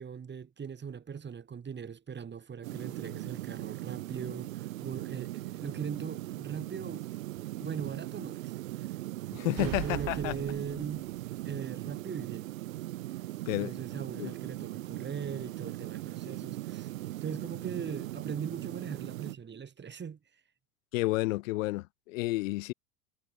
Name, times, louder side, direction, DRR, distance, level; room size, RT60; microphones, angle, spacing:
voice 1, 0.0-7.1 7.6-8.9 9.4-11.1 11.4-12.5 13.6-16.9 17.2-20.2, right 7 dB, 25° right, 7.6 m, -40 dB
sound 1, 2.6-19.3, right 17 dB, 80° right, 1.7 m, -39 dB
voice 2, 9.3-10.4 13.5-13.7 14.2-14.3 20.9-22.7, left 20 dB, 75° left, 0.9 m, -31 dB
sound 2, 9.6-11.2, right 26 dB, 55° right, 1.6 m, -39 dB
hypercardioid pair, 100°, 39 cm